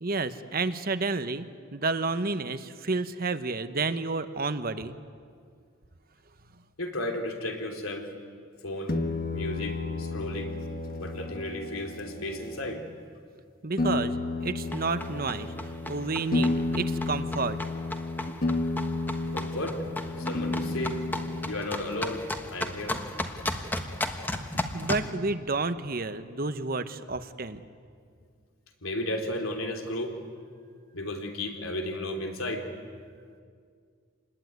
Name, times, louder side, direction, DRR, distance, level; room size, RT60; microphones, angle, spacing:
voice 1, 0.0-1.5 1.7-4.9 13.6-15.5 15.9-17.6 20.5-21.1 24.7-27.6, right 3 dB, 45° right, 11 dB, 1.0 m, -30 dB
voice 2, 6.8-8.1 8.6-9.0 9.3-10.5 11.0-12.8 19.3-19.8 20.2-21.0 21.5-22.2 22.5-23.0 24.5-24.8 28.8-30.1 30.9-32.7, left 1 dB, 90° left, 4 dB, 3.4 m, -34 dB
sound 1, 8.9-12.8 13.8-21.5, left 2 dB, 45° left, 1.4 m, -32 dB
sound 2, 14.7-25.1, left 1 dB, 10° left, 1.3 m, -35 dB
27.0 x 20.5 x 9.4 m, 2.2 s
head